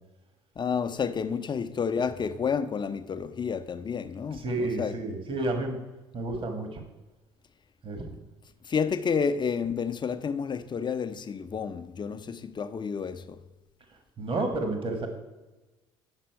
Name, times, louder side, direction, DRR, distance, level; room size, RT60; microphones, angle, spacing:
voice 1, 0.6-4.9 8.6-13.4, left 6 dB, 35° left, 0.7 m, -30 dB
voice 2, 4.3-5.8 6.1-6.8 7.8-8.2 14.2-15.1, right 2 dB, 40° right, 1.6 m, -30 dB
9.7 x 5.9 x 4.6 m
hypercardioid pair, 65°, 14 cm